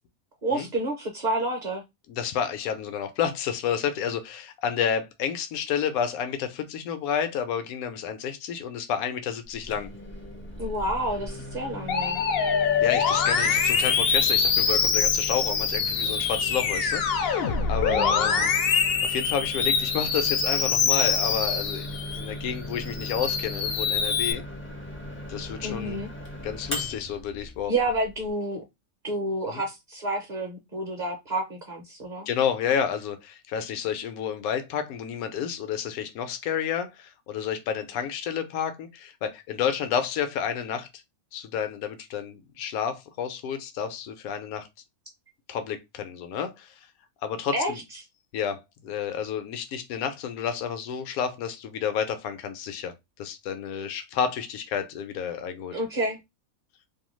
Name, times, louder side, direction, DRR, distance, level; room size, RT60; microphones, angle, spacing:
voice 1, 0.4-1.8 10.6-12.2 17.9-18.5 25.6-26.1 27.7-28.6 29.0-32.3 47.5-47.7 55.7-56.2, right 1 dB, 45° right, 0.6 m, -29 dB
voice 2, 2.1-9.9 12.8-18.5 19.0-24.4 25.3-26.0 26.4-27.7 29.4-29.6 32.3-40.9 41.3-44.7 45.5-46.7 47.2-47.8 48.3-52.9 53.2-55.7, left 8 dB, 85° left, 1.0 m, -30 dB
Microwave oven, 9.5-28.3, left 1 dB, 20° left, 0.4 m, -39 dB
Musical instrument, 11.9-22.3 22.8-24.3, left 6 dB, 65° left, 0.6 m, -24 dB
2.7 x 2.2 x 3.0 m
omnidirectional pair, 1.5 m